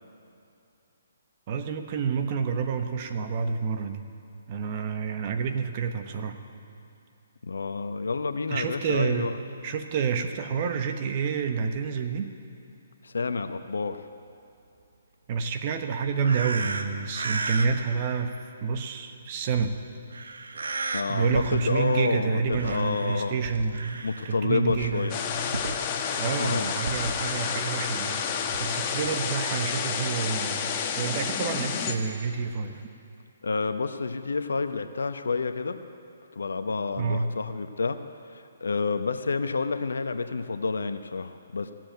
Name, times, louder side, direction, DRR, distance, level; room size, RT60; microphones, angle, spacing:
voice 1, 1.5-4.0 4.5-6.4 8.5-9.3 9.6-12.3 15.3-18.3 18.6-19.7 21.1-25.1 26.2-32.8 37.0-37.3, right 5 dB, 40° right, 7 dB, 1.1 m, -28 dB
voice 2, 7.4-9.3 13.0-14.0 20.9-23.3 24.0-25.2 26.4-26.7 33.4-35.8 36.3-38.0 38.3-41.7, left 4 dB, 75° left, 9 dB, 0.9 m, -29 dB
sound 1, 16.2-18.0 19.6-19.7 20.1-21.0 21.3-22.2 22.5-24.4 24.7-27.8 28.5-28.7, right 3 dB, 75° right, 1.1 m, -35 dB
sound 2, 25.1-31.9, left 7 dB, 30° left, 1.1 m, -30 dB
17.0 x 7.6 x 9.2 m, 2.7 s
figure-of-eight pair, 140°, 0 cm